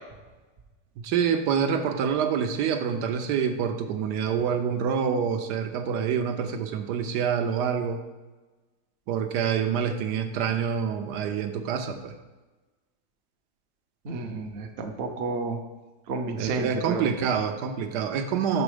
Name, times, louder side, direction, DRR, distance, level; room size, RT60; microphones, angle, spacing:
voice 1, 1.0-8.0 9.1-12.2 16.3-18.6, right 7 dB, 80° right, 6 dB, 1.2 m, -26 dB
voice 2, 14.0-15.6 16.1-17.0, right 3 dB, 50° right, 4 dB, 0.7 m, -31 dB
6.1 x 5.1 x 4.9 m, 1.2 s
omnidirectional pair, 1.8 m